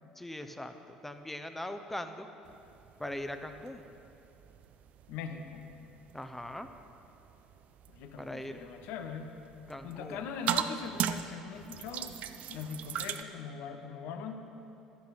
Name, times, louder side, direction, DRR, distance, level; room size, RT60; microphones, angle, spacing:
voice 1, 0.2-0.7 1.0-2.3 3.0-3.9 6.1-6.7 8.2-8.6 9.7-10.2, left 1 dB, 5° left, 7 dB, 1.0 m, -40 dB
sound 1, 2.4-13.2, right 9 dB, 50° right, 0.6 m, -40 dB
voice 2, 5.1-5.6 7.9-9.4 9.8-12.2 12.5-14.3, left 6 dB, 60° left, 6 dB, 1.1 m, -41 dB
15.5 x 13.0 x 4.2 m, 2.9 s
figure-of-eight pair, 60°, 3 cm